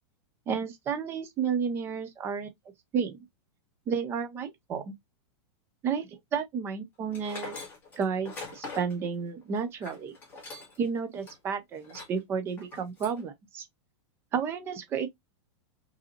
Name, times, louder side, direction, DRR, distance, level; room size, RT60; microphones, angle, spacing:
voice 1, 0.5-2.5 2.9-3.2 3.9-4.9 5.8-7.6 8.0-10.1 10.8-13.6 14.3-15.1, right 6 dB, 15° right, 0.5 m, -31 dB
Tools, 7.1-10.9 11.2-11.3 11.8-12.2 12.6-13.2, left 3 dB, 10° left, 1.8 m, -42 dB
5.0 x 2.7 x 2.8 m
supercardioid pair, 170°, 15 cm